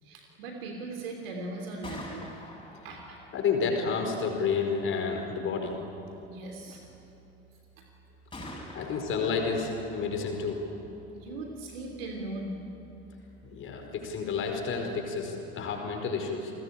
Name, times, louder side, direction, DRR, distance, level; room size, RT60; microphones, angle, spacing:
voice 1, 0.0-2.3 2.8-3.2 6.2-6.9 7.8-7.9 11.1-12.5, right 2 dB, 65° right, 2 dB, 3.2 m, -39 dB
Gunshot gunfire, 1.6-15.4, left 1 dB, 15° left, 7.9 m, -50 dB
voice 2, 3.3-5.8 8.7-10.7 13.4-16.5, left 5 dB, 40° left, 3 dB, 4.8 m, -30 dB
30.0 x 20.5 x 8.7 m, 2.9 s
figure-of-eight pair, 65°, 32 cm